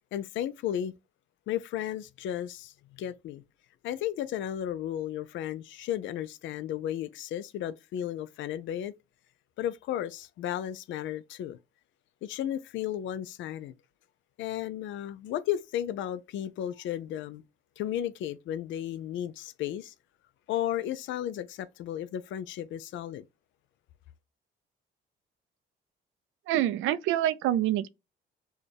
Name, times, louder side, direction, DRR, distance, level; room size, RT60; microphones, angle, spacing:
voice 1, 0.1-0.9 1.5-3.4 3.8-8.9 9.6-11.6 12.2-13.7 14.4-17.4 17.8-19.9 20.5-23.2, left 11 dB, 75° left, 0.4 m, -34 dB
voice 2, 26.5-27.9, right 12 dB, 90° right, 0.4 m, -26 dB
6.2 x 2.2 x 3.3 m
cardioid pair, 90°, 20 cm